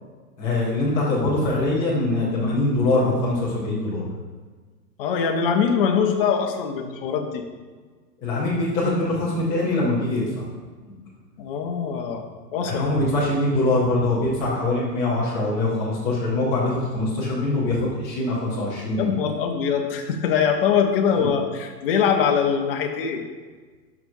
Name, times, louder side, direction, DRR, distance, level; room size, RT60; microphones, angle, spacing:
voice 1, 0.4-4.0 8.2-10.4 12.6-19.1 21.2-21.3, left 2 dB, 5° left, -7 dB, 0.4 m, -23 dB
voice 2, 5.0-7.4 11.4-12.3 12.5-12.9 19.0-23.2, left 7 dB, 35° left, 3 dB, 0.8 m, -22 dB
11.5 x 6.0 x 2.6 m, 1.4 s
hypercardioid pair, 150°, 50 cm